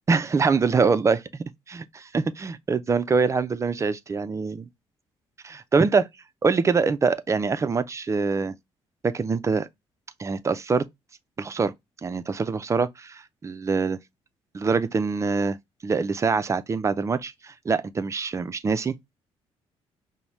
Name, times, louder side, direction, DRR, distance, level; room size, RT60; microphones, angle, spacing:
voice 1, 0.1-4.7 5.4-6.1 6.4-8.5 9.0-9.7 10.2-10.9 11.4-11.7 12.0-14.0 14.5-15.6 15.8-19.0, right 4 dB, 30° right, 0.4 m, -24 dB
5.3 x 2.1 x 3.0 m
cardioid pair, 90°, 10 cm